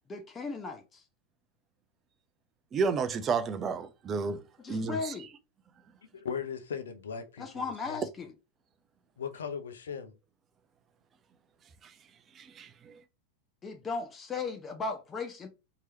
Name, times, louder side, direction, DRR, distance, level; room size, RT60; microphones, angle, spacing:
voice 1, 0.1-1.0 4.6-5.3 7.4-8.3 13.6-15.5, left 4 dB, 20° left, 0.8 m, -36 dB
voice 2, 2.7-4.4 4.7-5.1 12.4-12.9, right 5 dB, 25° right, 0.6 m, -31 dB
voice 3, 6.1-8.0 9.2-10.1, left 6 dB, 65° left, 0.7 m, -38 dB
4.6 x 3.0 x 2.8 m
figure-of-eight pair, 90°, 0 cm